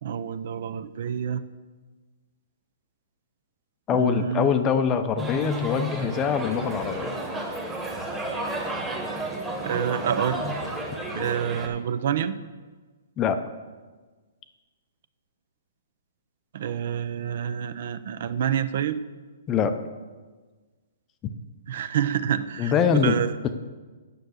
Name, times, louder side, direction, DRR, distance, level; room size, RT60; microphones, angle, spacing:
voice 1, 0.0-1.4 3.9-4.5 9.6-10.4 11.1-12.4 16.5-19.0 21.7-22.7 23.0-23.3, right 9 dB, 55° right, 13 dB, 0.5 m, -27 dB
voice 2, 3.9-7.2 13.2-13.4 19.5-19.7 22.6-23.1, left 7 dB, 20° left, 9 dB, 0.6 m, -23 dB
sound 1, 5.2-11.7, right 1 dB, 10° right, 1.3 m, -32 dB
9.5 x 6.7 x 6.4 m, 1.3 s
hypercardioid pair, 155°, 0 cm